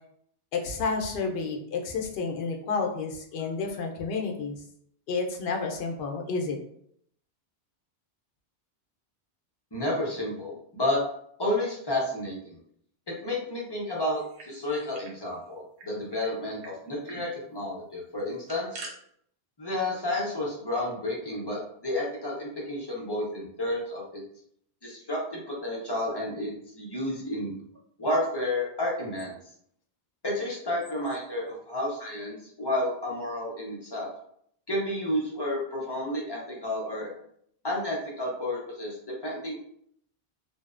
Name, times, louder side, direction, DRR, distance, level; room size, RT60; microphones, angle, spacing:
voice 1, 0.5-4.6 5.1-6.6, left 4 dB, 70° left, 2 dB, 0.7 m, -30 dB
voice 2, 9.7-11.0 11.4-12.6 13.1-18.8 19.6-24.2 24.8-27.5 28.0-29.4 30.2-34.1 34.7-37.1 37.6-39.0 39.2-39.6, left 1 dB, 30° left, -4 dB, 0.5 m, -31 dB
sound 1, 14.1-15.2 15.4-15.5 15.8-16.3 16.6-16.7 17.0-17.2 18.2-18.9, right 3 dB, 80° right, 0.9 m, -45 dB
2.6 x 2.0 x 2.4 m, 0.67 s
omnidirectional pair, 1.1 m